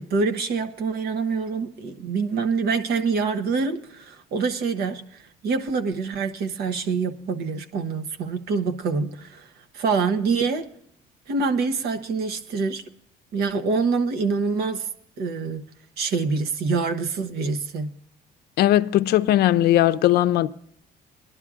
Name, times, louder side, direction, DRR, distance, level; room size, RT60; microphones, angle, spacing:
voice 1, 0.0-5.0 5.4-9.5 9.7-10.7 11.3-12.8 13.3-14.9 15.2-15.6 16.0-17.9, right 4 dB, 70° right, 1.0 m, -25 dB
voice 2, 18.6-20.5, left 13 dB, 70° left, 0.5 m, -18 dB
19.5 x 11.5 x 2.5 m
cardioid pair, 110°, 17 cm